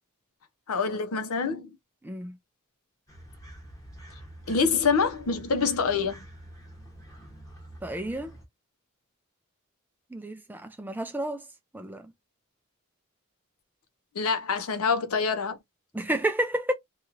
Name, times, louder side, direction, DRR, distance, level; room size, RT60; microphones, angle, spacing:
voice 1, 0.7-1.7 4.5-6.2 14.2-15.6, left 5 dB, 80° left, 0.7 m, -26 dB
voice 2, 2.0-2.3 7.8-8.3 10.1-11.4 11.7-12.1 15.9-16.7, right 1 dB, 10° right, 0.3 m, -30 dB
sound 1, 3.1-8.5, right 1 dB, 15° left, 1.0 m, -47 dB
2.9 x 2.3 x 2.8 m
head